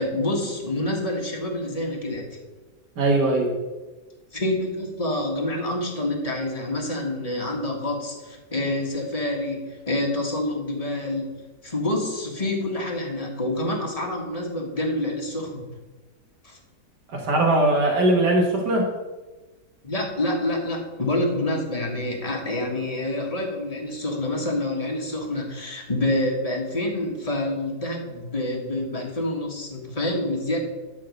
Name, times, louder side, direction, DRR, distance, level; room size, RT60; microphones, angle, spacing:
voice 1, 0.0-2.3 4.3-11.3 11.6-15.7 16.4-16.6 19.8-30.6, left 1 dB, 20° left, 0 dB, 1.7 m, -27 dB
voice 2, 3.0-3.5 17.1-18.9, right 1 dB, 80° right, 0 dB, 2.1 m, -20 dB
11.5 x 4.7 x 6.5 m, 1.2 s
omnidirectional pair, 1.8 m